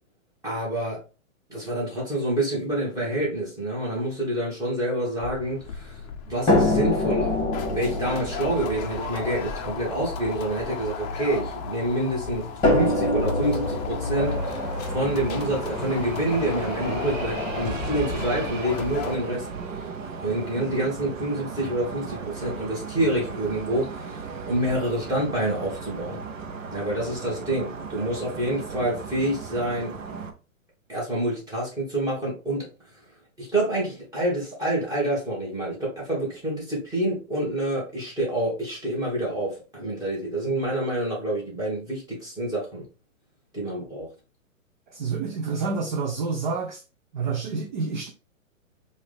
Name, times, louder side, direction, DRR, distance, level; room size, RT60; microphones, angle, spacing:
voice 1, 0.4-1.0 1.5-6.0 6.3-7.4 7.7-19.5 19.8-19.9 20.2-24.2 24.5-26.2 26.7-29.9 30.9-32.7 33.4-42.9 43.5-44.1, right 1 dB, 10° right, 2.1 m, -27 dB
sound 1, 5.2-19.2, left 5 dB, 30° left, 0.6 m, -35 dB
sound 2, 6.5-11.7 12.6-16.6 17.6-17.7 18.1-18.2, left 2 dB, 10° left, 1.9 m, -26 dB
sound 3, 14.2-30.3, right 5 dB, 70° right, 1.0 m, -36 dB
voice 2, 44.9-46.8 47.1-48.1, right 4 dB, 35° right, 0.7 m, -28 dB
4.8 x 2.8 x 3.4 m
hypercardioid pair, 140°, 40 cm